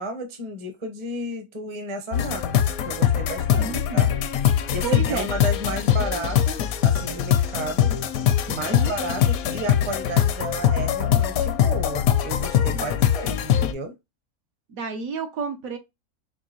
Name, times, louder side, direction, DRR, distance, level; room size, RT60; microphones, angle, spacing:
voice 1, 0.0-2.4 2.8-4.1 4.7-7.9 8.5-13.9, right 1 dB, 25° right, 0.6 m, -33 dB
sound 1, 2.1-13.7, left 10 dB, 75° left, 1.0 m, -22 dB
voice 2, 3.6-4.0 4.8-5.3 8.5-8.9 12.7-12.9 14.7-15.8, right 5 dB, 70° right, 1.2 m, -31 dB
4.6 x 2.7 x 2.8 m
omnidirectional pair, 1.6 m